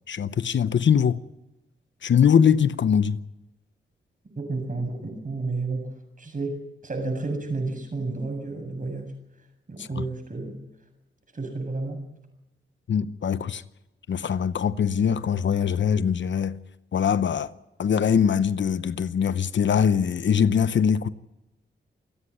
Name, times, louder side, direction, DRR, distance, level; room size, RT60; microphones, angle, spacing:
voice 1, 0.1-1.2 2.0-3.2 9.8-10.0 12.9-13.6 14.1-16.5 16.9-17.5 17.8-21.1, left 7 dB, 65° left, 0.9 m, -22 dB
voice 2, 4.4-9.1 9.7-10.6 11.3-12.0, right 3 dB, 40° right, 7.5 m, -31 dB
27.5 x 10.0 x 9.8 m
cardioid pair, 75°, 20 cm